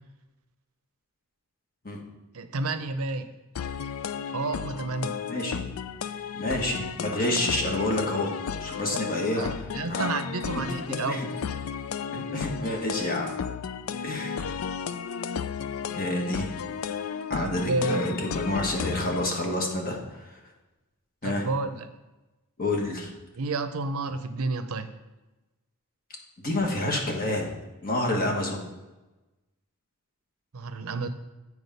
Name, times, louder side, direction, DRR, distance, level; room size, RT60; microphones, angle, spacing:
voice 1, 2.3-3.3 4.3-5.1 8.9-9.0 9.4-11.2 17.4-18.0 21.2-21.9 23.4-24.9 30.5-31.1, right 3 dB, 80° right, 10 dB, 0.6 m, -30 dB
sound 1, 3.6-19.3, left 7 dB, 70° left, 0.4 m, -34 dB
voice 2, 5.3-5.7 6.3-10.1 10.9-11.3 12.1-13.3 14.0-14.5 15.9-16.5 17.3-20.4 21.2-21.4 22.6-23.1 26.4-27.5 27.8-28.6, left 1 dB, 40° left, 1 dB, 1.4 m, -29 dB
8.2 x 4.8 x 5.4 m, 1.1 s
head